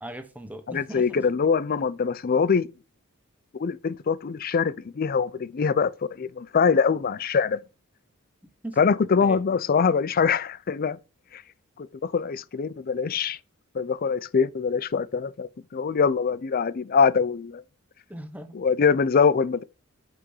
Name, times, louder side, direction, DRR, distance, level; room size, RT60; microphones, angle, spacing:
voice 1, 0.0-1.2 8.6-8.8 9.2-9.4 18.1-18.6, right 1 dB, 5° right, 0.9 m, -39 dB
voice 2, 0.7-2.7 3.6-7.6 8.8-11.0 11.3-11.4 11.8-13.4 13.7-17.6 18.5-19.6, left 5 dB, 45° left, 0.4 m, -23 dB
6.0 x 5.8 x 5.5 m
head